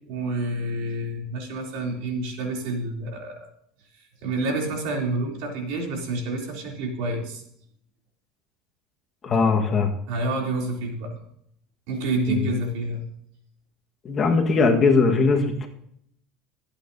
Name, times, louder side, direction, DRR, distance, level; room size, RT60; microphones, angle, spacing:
voice 1, 0.1-3.5 4.2-7.4 10.1-11.1 11.9-13.1, right 2 dB, 70° right, 1 dB, 3.1 m, -28 dB
voice 2, 9.2-9.9 12.3-12.5 14.0-15.7, left 4 dB, 30° left, 3 dB, 1.5 m, -20 dB
23.5 x 8.6 x 2.7 m, 0.70 s
supercardioid pair, 130°, 0 cm